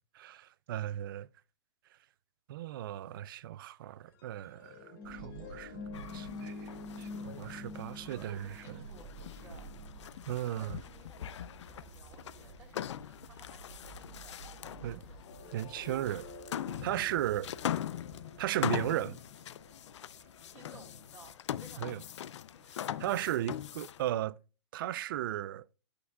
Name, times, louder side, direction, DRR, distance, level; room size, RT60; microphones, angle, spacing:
voice 1, 0.1-1.3 2.5-6.7 7.0-8.8 10.3-10.8 14.8-15.0 15.5-16.3 16.8-17.5 18.4-19.2 21.8-22.0 23.0-24.4 24.7-25.6, right 12 dB, 45° right, 0.4 m, -36 dB
sound 1, 4.1-11.7 14.9-19.0, left 3 dB, 45° left, 2.2 m, -48 dB
sound 2, 5.0-21.2, right 4 dB, 70° right, 2.0 m, -54 dB
sound 3, 5.9-24.1, left 10 dB, 75° left, 0.5 m, -42 dB
voice 2, 8.1-9.7 10.4-15.6 20.5-21.3 21.6-22.7, right 3 dB, 15° right, 2.3 m, -58 dB
11.0 x 6.0 x 2.3 m
hypercardioid pair, 155°, 15 cm